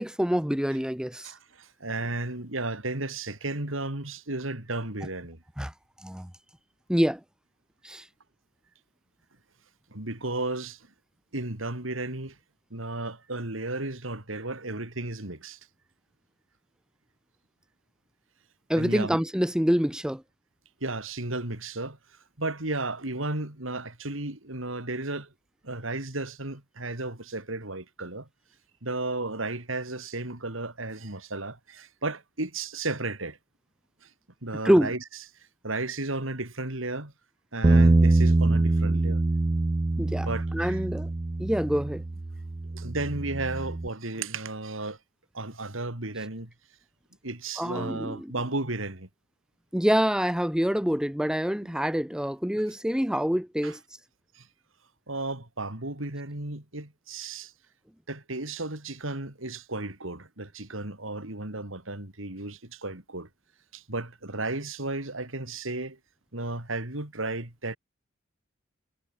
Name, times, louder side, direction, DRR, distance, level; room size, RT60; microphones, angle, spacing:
voice 1, 0.0-1.3 5.6-5.7 6.0-6.3 6.9-7.2 7.8-8.0 18.7-20.2 34.6-34.9 40.0-41.1 41.4-42.0 47.6-48.3 49.7-53.8, equal, 5° right, 0.9 m, -26 dB
voice 2, 1.2-5.4 9.9-10.9 11.3-12.4 12.7-15.6 18.8-19.2 20.8-22.0 22.4-25.3 25.6-28.3 28.8-33.4 34.0-34.1 34.4-35.0 35.6-37.1 37.5-39.2 40.3-40.8 42.7-45.0 45.3-46.5 47.2-49.1 51.6-51.7 53.6-53.7 54.4-54.5 55.1-57.5 58.1-63.3 63.7-66.0 66.3-67.8, right 2 dB, 85° right, 4.0 m, -34 dB
Bass guitar, 37.6-43.9, right 2 dB, 25° right, 0.4 m, -24 dB
head